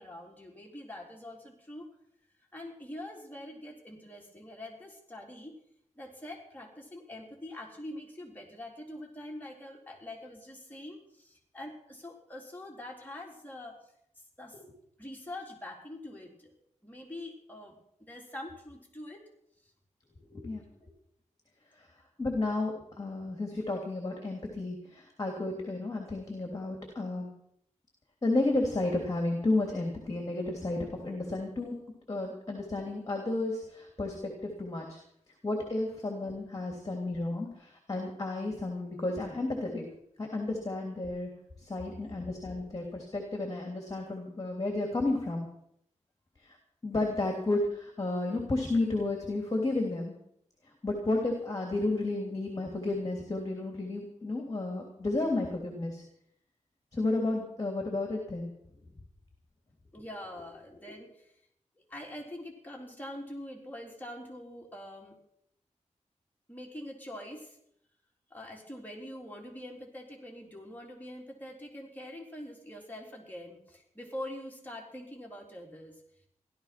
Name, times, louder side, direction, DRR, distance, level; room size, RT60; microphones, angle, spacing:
voice 1, 0.0-1.9 2.5-5.5 6.0-13.8 14.4-14.6 15.0-16.5 16.8-17.7 18.0-19.2 19.6-19.7 36.2-36.3 59.9-61.4 61.9-65.2 66.5-67.6 68.3-76.0, left 1 dB, 15° left, -1 dB, 3.6 m, -44 dB
voice 2, 20.3-20.6 21.8-21.9 22.2-27.3 28.2-31.7 32.1-35.0 35.4-39.8 40.2-41.3 41.6-45.5 46.4-46.6 46.8-50.1 50.8-56.0 56.9-58.5, left 2 dB, 30° left, 1 dB, 3.1 m, -32 dB
16.5 x 12.5 x 6.0 m, 0.72 s
wide cardioid pair, 130°, 13 cm